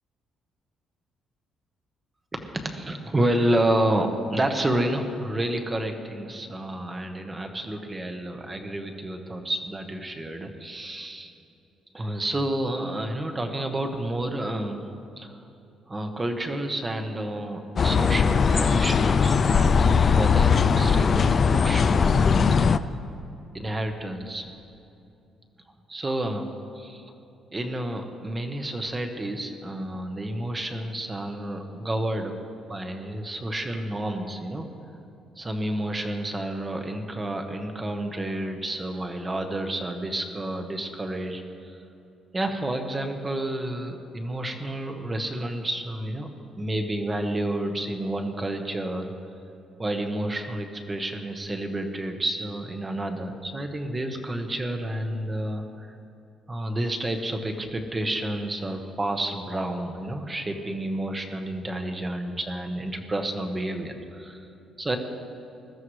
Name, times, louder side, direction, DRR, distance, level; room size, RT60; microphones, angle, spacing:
voice 1, 2.3-11.3 11.9-14.9 15.2-15.4 15.9-22.9 23.5-24.5 25.9-26.5 26.7-27.1 27.5-32.4 32.7-34.7 35.4-41.4 42.3-46.3 46.6-49.1 49.8-56.0 56.5-64.4 64.8-65.0, right 1 dB, 20° right, 5 dB, 1.1 m, -30 dB
sound 1, 17.8-22.8, left 6 dB, 35° left, 0.3 m, -20 dB
21.0 x 13.0 x 3.2 m, 2.8 s
cardioid pair, 140°, 0 cm